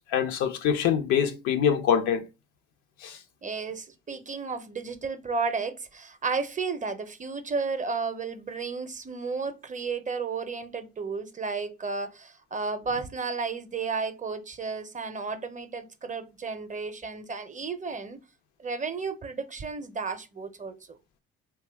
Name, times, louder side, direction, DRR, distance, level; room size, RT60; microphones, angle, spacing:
voice 1, 0.1-2.2 3.0-3.2, left 8 dB, 75° left, 0.6 m, -24 dB
voice 2, 3.4-18.2 18.6-21.0, right 4 dB, 25° right, 0.5 m, -33 dB
2.7 x 2.2 x 3.3 m
supercardioid pair, 60°, 30 cm